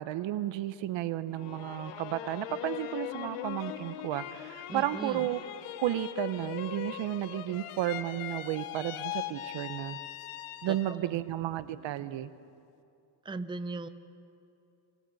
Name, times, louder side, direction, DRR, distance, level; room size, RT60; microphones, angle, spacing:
voice 1, 0.0-5.4 5.8-10.0 10.6-12.3, right 13 dB, 65° right, 14 dB, 0.9 m, -33 dB
sound 1, 1.3-11.1 11.6-12.2, left 13 dB, 85° left, 1.0 m, -41 dB
voice 2, 4.7-5.2 10.7-10.8 11.0-11.1 13.2-13.9, right 3 dB, 10° right, 11 dB, 0.7 m, -37 dB
29.0 x 25.5 x 4.1 m, 2.6 s
cardioid pair, 105°, 49 cm